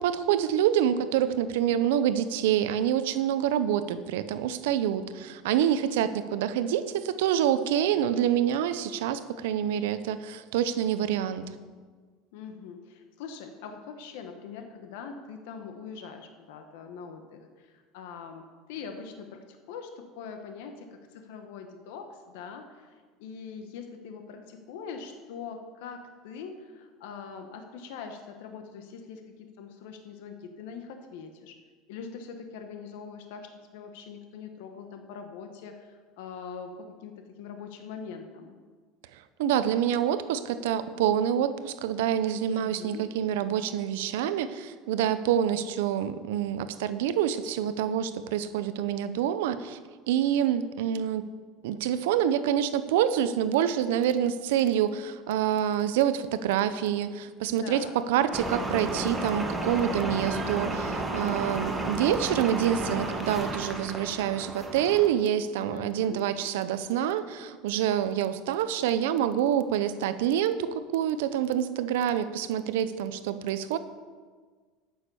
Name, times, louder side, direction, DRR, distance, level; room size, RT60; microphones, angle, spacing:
voice 1, 0.0-11.4 39.4-49.8 50.1-51.3 51.6-73.8, right 10 dB, 90° right, 13 dB, 0.6 m, -27 dB
voice 2, 12.3-31.5 31.9-37.1 37.4-38.5 42.5-43.0 57.6-58.0 65.7-66.2, left 6 dB, 80° left, 5 dB, 1.1 m, -42 dB
sound 1, 58.3-65.1, right 2 dB, 15° right, 1.1 m, -32 dB
9.5 x 6.5 x 6.8 m, 1.5 s
supercardioid pair, 135°, 0 cm